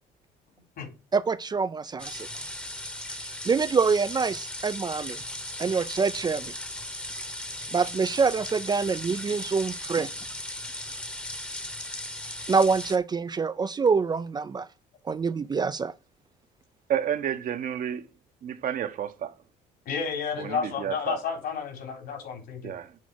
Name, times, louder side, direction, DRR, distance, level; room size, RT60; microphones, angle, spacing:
voice 1, 1.1-2.3 3.5-5.2 5.6-6.5 7.7-10.1 12.5-14.7 15.1-15.9, right 5 dB, 25° right, 0.4 m, -25 dB
sound 1, 2.0-13.0, left 1 dB, 5° left, 1.0 m, -37 dB
voice 2, 16.9-18.1 18.4-19.3 20.4-21.2 22.6-22.9, right 9 dB, 55° right, 1.0 m, -30 dB
voice 3, 19.8-22.7, left 6 dB, 70° left, 4.6 m, -31 dB
8.4 x 4.1 x 6.3 m
cardioid pair, 110°, 17 cm